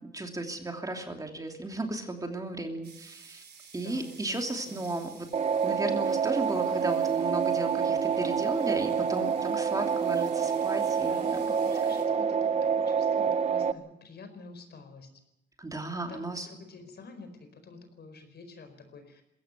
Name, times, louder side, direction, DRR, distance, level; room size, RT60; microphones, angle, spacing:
voice 1, 0.1-3.4 3.7-5.3 5.6-11.2 15.6-16.5, right 2 dB, 20° right, 4 dB, 2.9 m, -35 dB
sound 1, 2.8-12.0, right 6 dB, 65° right, 4.3 m, -54 dB
voice 2, 3.8-5.1 9.4-9.6 10.6-10.7 11.1-15.1 16.1-19.2, left 4 dB, 60° left, 8 dB, 4.7 m, -48 dB
sound 2, 5.3-13.7, right 6 dB, 35° right, 0.9 m, -27 dB
21.5 x 17.0 x 8.3 m, 0.87 s
wide cardioid pair, 130°, 19 cm